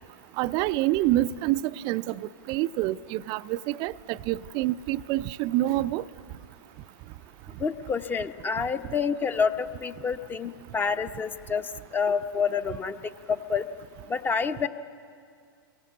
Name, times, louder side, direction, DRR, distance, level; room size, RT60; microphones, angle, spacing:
voice 1, 0.4-6.0, right 15 dB, 40° right, 0.6 m, -27 dB
voice 2, 7.6-11.6 11.9-13.0 13.3-13.7 14.1-14.7, left 6 dB, 15° left, 1.0 m, -28 dB
28.5 x 23.0 x 8.3 m
figure-of-eight pair, 100°, 12 cm